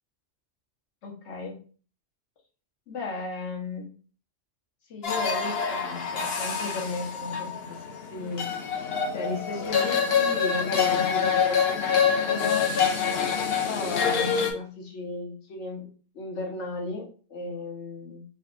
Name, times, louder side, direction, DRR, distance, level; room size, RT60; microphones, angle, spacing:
voice 1, 1.0-1.6 2.9-3.9 4.9-8.4 9.1-12.7 13.6-15.9 16.1-18.2, left 3 dB, 85° left, 1 dB, 1.2 m, -35 dB
sound 1, 5.0-14.5, left 6 dB, 65° left, 0.9 m, -26 dB
4.0 x 2.2 x 3.7 m, 0.39 s
omnidirectional pair, 1.2 m